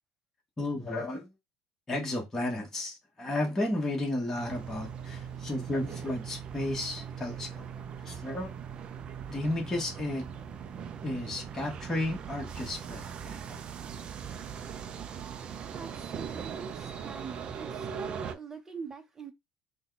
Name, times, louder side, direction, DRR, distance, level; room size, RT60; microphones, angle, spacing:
voice 1, 0.6-1.3 1.9-7.6 8.0-8.5 9.3-10.2 11.0-13.6, left 1 dB, 15° left, 1.4 m, -33 dB
sound 1, 4.4-18.3, right 7 dB, 40° right, 0.5 m, -40 dB
voice 2, 15.7-19.3, right 5 dB, 20° right, 0.9 m, -45 dB
4.1 x 2.3 x 3.9 m
cardioid pair, 135°, 3 cm